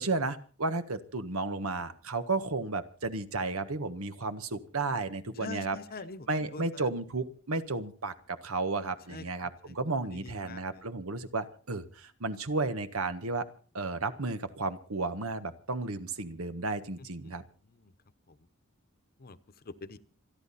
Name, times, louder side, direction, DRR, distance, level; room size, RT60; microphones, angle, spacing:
voice 1, 0.0-5.8 6.3-13.5 13.7-17.4, right 3 dB, 90° right, 10 dB, 1.4 m, -33 dB
voice 2, 5.4-6.8 9.1-9.7 10.1-10.8 17.3-17.4 17.7-17.9 18.3-18.4 19.2-19.4 19.6-20.0, left 3 dB, 45° left, 13 dB, 1.0 m, -45 dB
27.0 x 10.5 x 4.2 m, 0.41 s
head